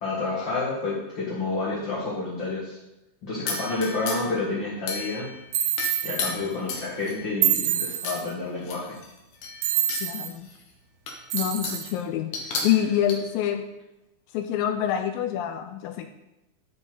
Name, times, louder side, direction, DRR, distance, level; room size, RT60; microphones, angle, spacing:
voice 1, 0.0-2.8 3.2-5.3 6.0-8.9, left 3 dB, 45° left, -7 dB, 1.7 m, -29 dB
sound 1, 3.5-4.4 4.9-5.4 5.8-7.3 8.0-8.2 8.6-10.1 10.5-10.6 11.1-11.9 12.3-13.2, left 4 dB, 60° left, 2.3 m, -33 dB
sound 2, 5.5-6.2 7.4-8.3 9.6-10.3 11.3-11.9, right 11 dB, 80° right, 2.5 m, -26 dB
voice 2, 10.0-10.5 11.3-12.3 12.6-13.6 14.3-16.1, left 10 dB, 80° left, 8 dB, 2.1 m, -26 dB
11.0 x 7.1 x 3.9 m, 0.93 s
omnidirectional pair, 4.4 m